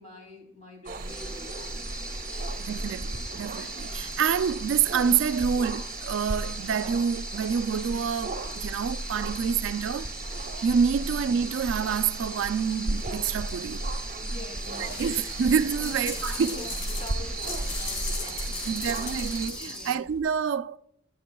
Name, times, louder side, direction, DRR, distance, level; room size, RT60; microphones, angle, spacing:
voice 1, 0.0-2.2 11.0-11.1 14.2-15.4 15.8-16.1 16.5-18.9 19.6-20.1, left 1 dB, 35° left, 2.7 m, -46 dB
sound 1, 0.9-19.5, right 2 dB, 45° right, 0.7 m, -35 dB
sound 2, 1.1-19.9, equal, 5° left, 1.2 m, -41 dB
voice 2, 2.6-10.1 10.6-13.9 14.8-16.7 18.7-20.8, right 7 dB, 65° right, 0.3 m, -27 dB
sound 3, 14.6-20.2, left 4 dB, 70° left, 5.0 m, -38 dB
21.0 x 7.7 x 2.3 m
head